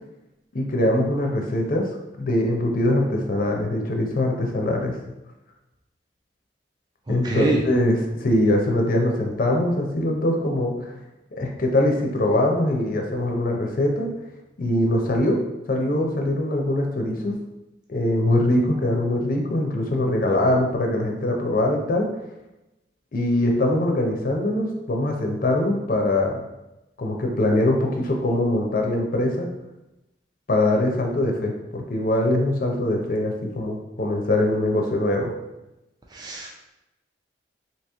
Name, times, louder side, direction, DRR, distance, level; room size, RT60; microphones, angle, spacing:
voice 1, 0.5-1.9 2.2-5.0 7.1-10.9 11.4-14.1 14.6-15.4 15.7-17.3 17.9-22.1 23.1-26.4 27.0-29.5 30.5-35.3, left 1 dB, 45° left, 1 dB, 0.5 m, -22 dB
voice 2, 7.2-7.6 36.1-36.7, right 1 dB, 20° right, -2 dB, 0.4 m, -25 dB
2.9 x 2.8 x 3.4 m, 0.97 s
head